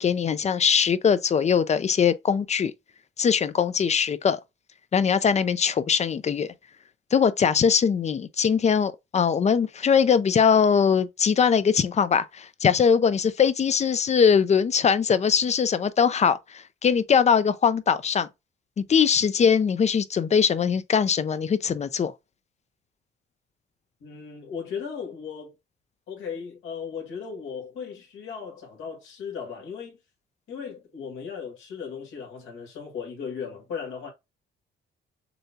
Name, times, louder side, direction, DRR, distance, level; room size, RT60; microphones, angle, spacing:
voice 1, 0.0-2.7 3.2-4.4 4.9-6.5 7.1-18.3 18.8-22.1, left 7 dB, 35° left, 0.5 m, -21 dB
voice 2, 24.0-25.6 26.1-30.0 30.5-34.1, left 6 dB, 85° left, 2.0 m, -36 dB
6.8 x 2.3 x 2.7 m
cardioid pair, 90°, 20 cm